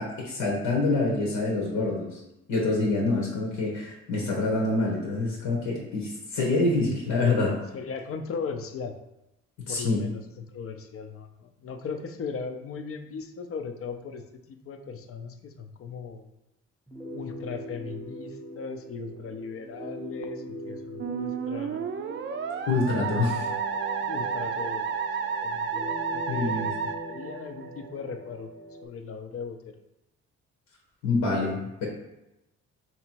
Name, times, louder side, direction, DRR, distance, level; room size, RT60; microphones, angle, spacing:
voice 1, 0.0-2.2 2.5-7.6 9.6-10.0 22.7-23.5 26.3-26.7 31.0-31.9, left 3 dB, 85° left, -1 dB, 1.1 m, -26 dB
voice 2, 7.6-8.9 9.7-14.2 14.5-16.3 17.1-21.8 23.4-23.6 24.0-25.0 25.4-26.6 27.1-28.5 28.8-29.7, left 5 dB, 50° left, 7 dB, 0.6 m, -38 dB
sound 1, 16.9-28.9, right 1 dB, 5° left, 0.8 m, -41 dB
Musical instrument, 21.0-27.9, right 6 dB, 40° right, 0.4 m, -31 dB
3.3 x 2.9 x 4.5 m, 0.92 s
cardioid pair, 90°, 30 cm